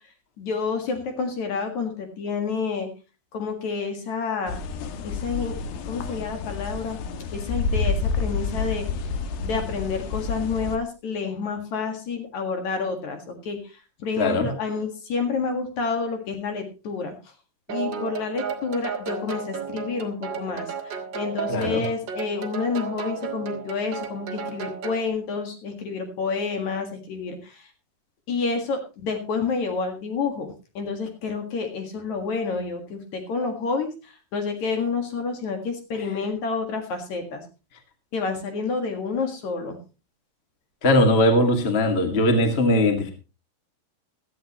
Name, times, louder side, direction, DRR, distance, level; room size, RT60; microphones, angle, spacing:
voice 1, 0.4-2.9 3.3-4.6 5.0-7.0 7.3-8.9 9.4-17.1 17.7-27.7 28.3-37.4 38.1-39.8, left 4 dB, 50° left, 5 dB, 2.7 m, -29 dB
sound 1, 4.5-10.8, left 4 dB, 70° left, 2.7 m, -29 dB
voice 2, 14.1-14.5 21.5-21.8 35.9-36.1 40.8-43.1, left 1 dB, 30° left, 5 dB, 1.2 m, -20 dB
sound 2, 17.7-25.1, right 6 dB, 60° right, 1.2 m, -33 dB
16.5 x 13.0 x 3.0 m, 0.31 s
omnidirectional pair, 4.8 m